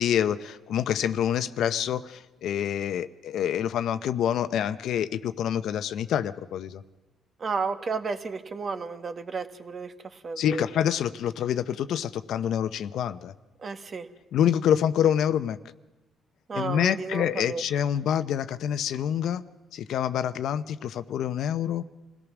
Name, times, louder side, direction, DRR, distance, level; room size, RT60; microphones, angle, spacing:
voice 1, 0.0-6.8 10.4-13.3 14.3-15.6 16.5-19.4 19.7-21.9, left 9 dB, 75° left, 12 dB, 0.8 m, -27 dB
voice 2, 7.4-10.6 13.6-14.1 16.5-17.6, right 4 dB, 45° right, 8 dB, 1.5 m, -32 dB
27.0 x 17.0 x 6.1 m, 1.2 s
cardioid pair, 90°, 0 cm